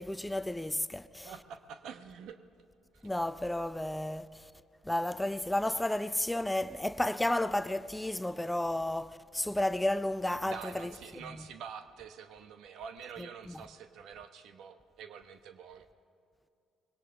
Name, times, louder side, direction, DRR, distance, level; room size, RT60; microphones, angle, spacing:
voice 1, 0.0-1.3 3.0-4.5 4.8-11.4 13.2-13.6, left 1 dB, 10° left, 0.5 m, -32 dB
voice 2, 1.2-2.4 2.9-3.0 10.4-15.9, right 7 dB, 65° right, 1.0 m, -46 dB
21.5 x 17.5 x 3.8 m
hypercardioid pair, 55°, 0 cm